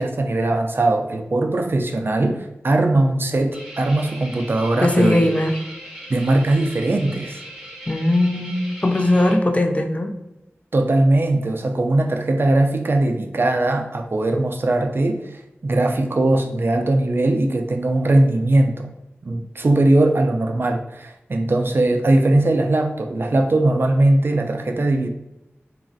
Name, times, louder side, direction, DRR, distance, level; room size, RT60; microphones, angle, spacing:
voice 1, 0.0-5.2 6.1-7.4 10.7-18.9 19.2-25.1, right 2 dB, 50° right, 4 dB, 0.3 m, -20 dB
sound 1, 3.5-9.4, right 1 dB, 10° right, 0.8 m, -39 dB
voice 2, 4.8-5.6 7.9-10.1, left 1 dB, 30° left, 4 dB, 0.4 m, -19 dB
3.0 x 2.3 x 2.5 m, 0.92 s
wide cardioid pair, 55°, 5 cm